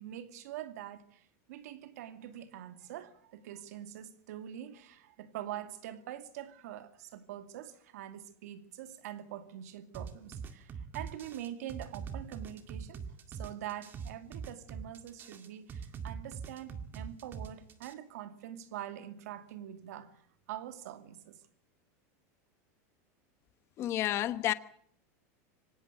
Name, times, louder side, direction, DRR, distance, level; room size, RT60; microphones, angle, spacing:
voice 1, 0.0-20.2 20.5-21.4, right 11 dB, 80° right, 2.6 m, -44 dB
sound 1, 9.9-17.9, right 6 dB, 25° right, 2.0 m, -42 dB
voice 2, 23.8-24.5, left 13 dB, 30° left, 1.1 m, -30 dB
25.0 x 18.0 x 8.2 m
supercardioid pair, 165°, 8 cm